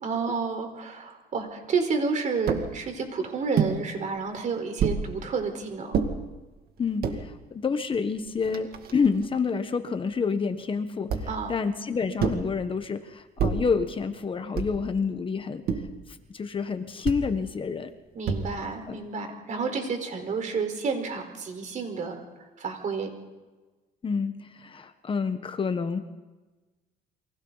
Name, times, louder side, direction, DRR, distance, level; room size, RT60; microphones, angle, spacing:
voice 1, 0.0-6.0 11.3-11.6 18.1-22.2 22.6-23.1, right 4 dB, 45° right, 5 dB, 4.4 m, -30 dB
sound 1, 2.5-2.7 3.6-3.8 4.8-5.0 5.9-6.1 6.8-7.2 7.9-8.0 8.3-9.3 11.1-11.5 12.2-12.5 13.4-13.7 14.6-14.9 15.7-16.0 17.0-17.3 18.2-18.7, right 6 dB, 65° right, 2.4 m, -28 dB
voice 2, 6.8-15.6 16.1-17.9 18.9-19.0 24.0-26.0, left 5 dB, 30° left, 9 dB, 1.3 m, -28 dB
29.5 x 24.0 x 4.1 m, 1.2 s
cardioid pair, 110°, 17 cm